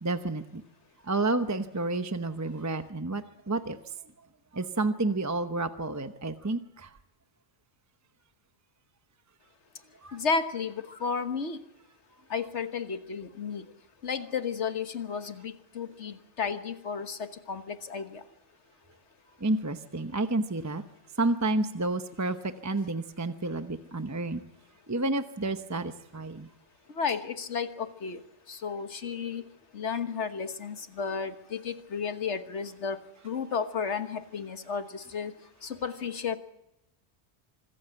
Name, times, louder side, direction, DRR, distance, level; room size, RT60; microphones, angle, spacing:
voice 1, 0.0-0.6 1.0-3.8 4.5-6.9 10.0-10.2 19.4-20.8 21.2-24.4 24.9-26.5, right 2 dB, 15° right, 9 dB, 0.8 m, -30 dB
voice 2, 10.1-11.6 12.3-13.7 14.0-18.2 26.9-28.2 28.5-29.4 29.7-35.3 35.6-36.4, left 5 dB, 85° left, 9 dB, 1.6 m, -33 dB
25.5 x 14.5 x 9.0 m, 0.87 s
omnidirectional pair, 1.1 m